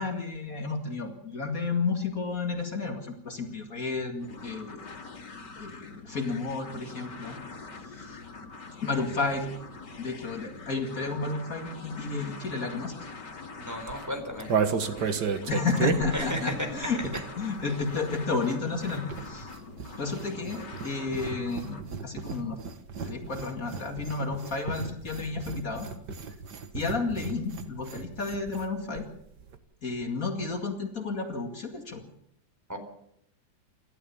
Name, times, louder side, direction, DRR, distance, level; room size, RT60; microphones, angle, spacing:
voice 1, 0.0-4.9 5.6-7.4 7.8-8.2 8.8-9.5 10.0-13.0 15.5-17.0 17.4-19.5 19.9-22.6 23.0-25.9 26.7-29.1 29.8-32.0, left 4 dB, 55° left, 4 dB, 2.6 m, -32 dB
sound 1, 4.2-21.8, left 4 dB, 90° left, 3.0 m, -44 dB
voice 2, 13.7-14.5 16.1-16.7 32.7-32.8, equal, 10° right, 3 dB, 4.2 m, -33 dB
sound 2, 13.8-17.5 17.8-28.7 29.0-29.1 29.3-29.6, right 6 dB, 75° right, 2.1 m, -34 dB
28.0 x 13.0 x 7.1 m, 0.76 s
omnidirectional pair, 1.8 m